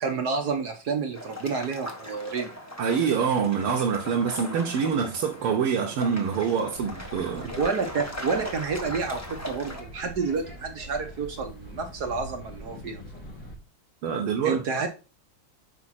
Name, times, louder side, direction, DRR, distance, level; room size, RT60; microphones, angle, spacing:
voice 1, 0.0-2.5 7.6-13.2 14.4-14.9, right 5 dB, 55° right, 1.3 m, -29 dB
sound 1, 1.2-9.8, left 1 dB, 10° left, 0.9 m, -38 dB
voice 2, 2.8-7.6 14.0-14.6, right 6 dB, 80° right, 1.8 m, -25 dB
sound 2, 6.7-13.6, equal, 60° left, 3.7 m, -43 dB
7.4 x 5.2 x 4.2 m
omnidirectional pair, 2.4 m